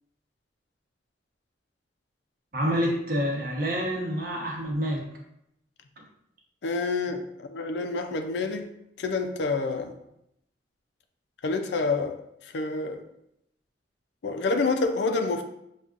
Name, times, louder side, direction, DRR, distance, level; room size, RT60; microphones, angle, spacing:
voice 1, 2.5-5.0 6.0-6.1, equal, 50° right, -1 dB, 0.9 m, -27 dB
voice 2, 6.6-8.7 9.0-9.9 11.4-13.0 14.2-15.4, left 3 dB, 70° left, 6 dB, 0.4 m, -28 dB
6.6 x 2.4 x 2.4 m, 0.79 s
head